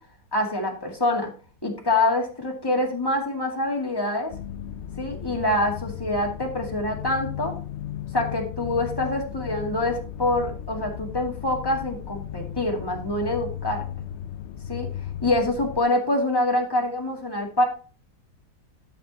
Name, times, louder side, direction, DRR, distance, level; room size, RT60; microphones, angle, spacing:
voice 1, 0.3-1.3 1.6-4.3 5.0-7.5 8.1-13.8 14.7-14.9 15.2-17.6, left 1 dB, 15° left, 0 dB, 2.3 m, -25 dB
sound 1, 4.3-15.8, left 10 dB, 85° left, 0.6 m, -35 dB
12.5 x 6.6 x 2.9 m, 0.38 s
omnidirectional pair, 1.9 m